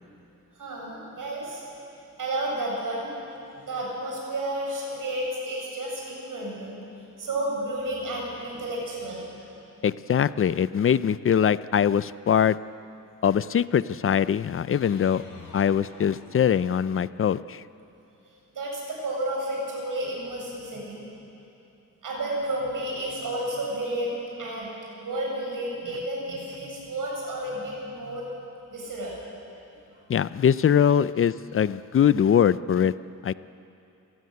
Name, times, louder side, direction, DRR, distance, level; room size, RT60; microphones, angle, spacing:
voice 1, 0.5-1.6 2.2-3.1 3.6-6.8 7.2-9.6 18.5-21.0 22.0-24.7 25.0-28.3 28.7-29.2 29.9-30.0, right 1 dB, 75° right, -2 dB, 7.6 m, -31 dB
voice 2, 9.8-12.6 13.2-15.2 15.5-17.6 30.1-32.9 33.2-33.3, left 8 dB, 40° left, 16 dB, 0.5 m, -22 dB
sound 1, 14.7-17.0, left 3 dB, 75° left, 5.1 m, -47 dB
28.5 x 16.0 x 9.5 m, 2.8 s
wide cardioid pair, 170°, 33 cm